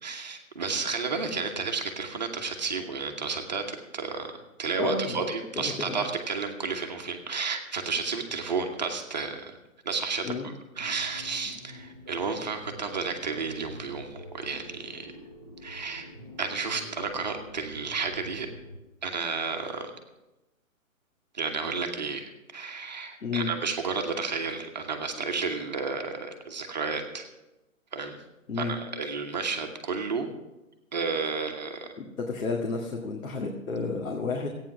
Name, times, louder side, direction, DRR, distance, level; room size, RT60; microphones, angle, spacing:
voice 1, 0.0-9.6 9.8-15.1 15.6-16.1 16.4-18.5 19.0-19.9 21.3-27.3 27.9-28.2 28.5-30.3 30.9-31.9, right 4 dB, 30° right, 3 dB, 1.1 m, -32 dB
voice 2, 4.8-5.2 5.6-6.1 10.2-10.5 23.2-23.5 28.5-28.7 32.0-34.6, left 4 dB, 75° left, 0 dB, 2.0 m, -31 dB
sound 1, 10.8-18.8, left 1 dB, 20° left, 1.1 m, -46 dB
14.5 x 9.1 x 6.0 m, 1.0 s
hypercardioid pair, 180°, 42 cm